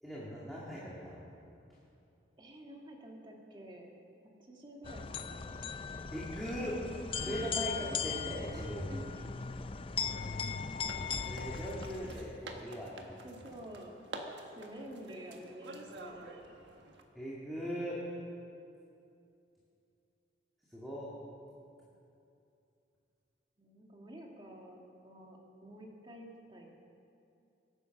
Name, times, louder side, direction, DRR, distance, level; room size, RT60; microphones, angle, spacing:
voice 1, 0.0-1.2 6.1-6.8 7.1-8.9 11.2-13.2 17.1-18.0 20.7-21.1, equal, ahead, -8 dB, 2.1 m, -40 dB
voice 2, 2.4-3.9 4.4-5.6 7.1-7.7 8.9-9.4 13.2-13.9 14.5-16.6 23.6-26.7, right 1 dB, 25° right, 0 dB, 1.9 m, -50 dB
sound 1, 4.8-12.4, left 6 dB, 30° left, 0.4 m, -38 dB
sound 2, 9.2-17.0, right 2 dB, 65° right, 1.5 m, -50 dB
22.5 x 10.0 x 6.0 m, 2.6 s
head